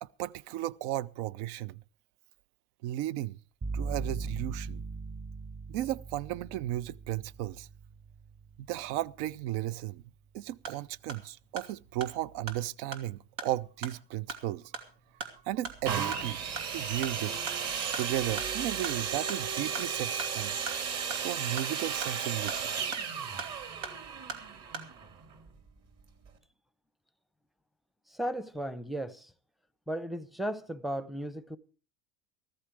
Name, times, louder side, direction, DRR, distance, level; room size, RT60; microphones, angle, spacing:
voice 1, 0.0-1.8 2.8-3.4 3.7-4.8 5.7-7.7 8.6-10.0 10.3-14.7 15.4-16.4 16.7-17.4 18.0-20.6 21.2-22.7, right 14 dB, 65° right, 0.7 m, -35 dB
sound 1, 3.6-11.3, right 4 dB, 30° right, 1.2 m, -41 dB
sound 2, 10.4-24.9, right 4 dB, 85° right, 2.9 m, -44 dB
sound 3, 15.8-25.5 26.3-26.4, right 7 dB, 45° right, 2.9 m, -34 dB
voice 2, 28.1-29.3 29.9-31.6, right 1 dB, ahead, 0.7 m, -35 dB
14.5 x 14.0 x 4.8 m
supercardioid pair, 110°, 37 cm